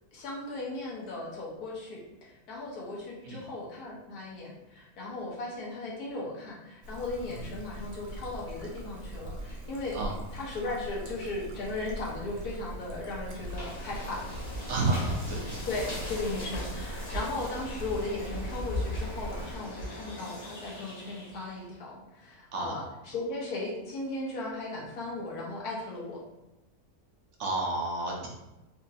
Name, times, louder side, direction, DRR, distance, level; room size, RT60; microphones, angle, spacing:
voice 1, 0.1-10.0 10.3-14.2 15.7-26.2, left 2 dB, 85° left, -4 dB, 1.5 m, -37 dB
Trickle dribble, 6.8-19.5, right 1 dB, 75° right, 1.2 m, -41 dB
sound 1, 13.2-21.6, left 1 dB, 50° left, 1.6 m, -39 dB
voice 2, 14.7-15.5 22.5-22.8 27.4-28.3, right 2 dB, 55° right, -1 dB, 1.0 m, -31 dB
4.4 x 2.8 x 2.5 m, 0.99 s
omnidirectional pair, 1.6 m